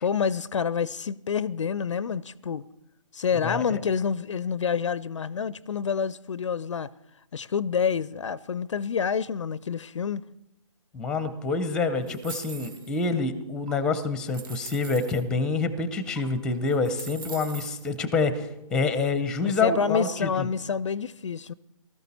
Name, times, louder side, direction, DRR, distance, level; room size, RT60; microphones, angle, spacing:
voice 1, 0.0-2.6 3.1-6.9 7.3-10.2 19.4-21.5, left 6 dB, 60° left, 0.4 m, -28 dB
voice 2, 3.3-3.8 10.9-20.5, left 4 dB, 5° left, 0.6 m, -27 dB
sound 1, 12.1-13.0 13.7-13.8 14.3-15.2 16.2-16.3 16.7-17.9, right 6 dB, 35° right, 1.1 m, -42 dB
19.0 x 13.5 x 4.2 m
figure-of-eight pair, 145°, 18 cm